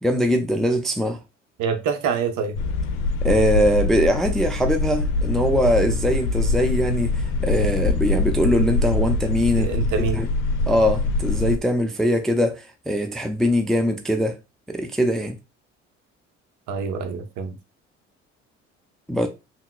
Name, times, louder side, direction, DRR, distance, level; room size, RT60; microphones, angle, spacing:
voice 1, 0.0-1.2 3.2-9.7 10.1-10.3 10.7-14.3 14.7-15.4 19.1-19.3, equal, ahead, 0.4 m, -22 dB
voice 2, 1.6-2.6 9.6-10.2 16.7-17.6, right 6 dB, 55° right, 0.8 m, -26 dB
sound 1, 2.6-11.6, left 3 dB, 65° left, 0.6 m, -23 dB
5.6 x 2.1 x 2.3 m
figure-of-eight pair, 50°, 36 cm